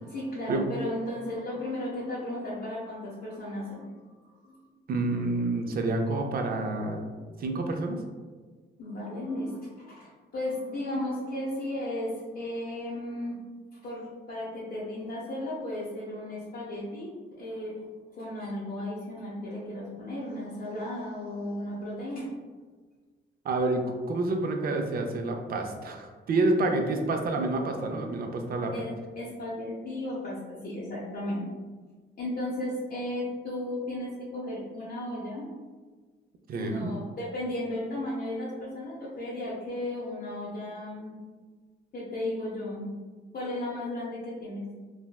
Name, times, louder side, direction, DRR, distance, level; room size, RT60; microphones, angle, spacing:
voice 1, 0.0-3.8 4.2-4.5 8.8-13.4 13.8-17.1 17.4-17.9 18.1-22.3 28.7-31.4 32.2-35.5 36.5-41.1 41.9-42.9 43.3-44.6, left 1 dB, 50° left, -7 dB, 0.7 m, -35 dB
voice 2, 4.9-7.0 7.4-8.0 23.4-28.7 36.5-37.0, right 2 dB, 50° right, 4 dB, 0.4 m, -28 dB
3.3 x 2.1 x 2.2 m, 1.4 s
cardioid pair, 90°, 20 cm